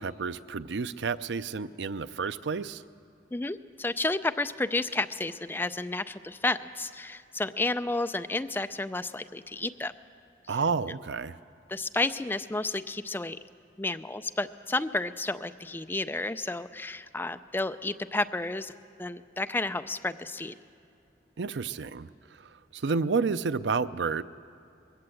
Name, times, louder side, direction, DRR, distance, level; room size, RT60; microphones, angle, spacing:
voice 1, 0.0-2.8 10.5-11.4 21.4-22.1 22.7-24.2, right 5 dB, 90° right, 14 dB, 0.5 m, -30 dB
voice 2, 3.3-9.9 11.7-13.4 13.8-18.7 19.0-20.5, left 2 dB, 10° left, 10 dB, 0.4 m, -31 dB
21.0 x 16.5 x 7.7 m, 2.5 s
head